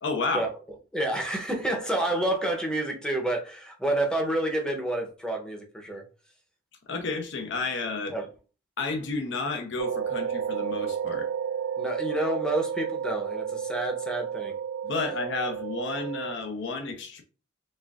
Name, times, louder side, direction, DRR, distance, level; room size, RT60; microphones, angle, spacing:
voice 1, 0.0-0.5 6.9-8.1 8.8-11.3 14.8-17.2, left 3 dB, 65° left, 0.8 m, -31 dB
voice 2, 0.9-6.0 8.1-8.3 11.8-14.6, right 1 dB, 5° left, 0.8 m, -29 dB
sound 1, 9.8-16.4, right 7 dB, 80° right, 0.5 m, -32 dB
4.3 x 3.5 x 2.4 m
head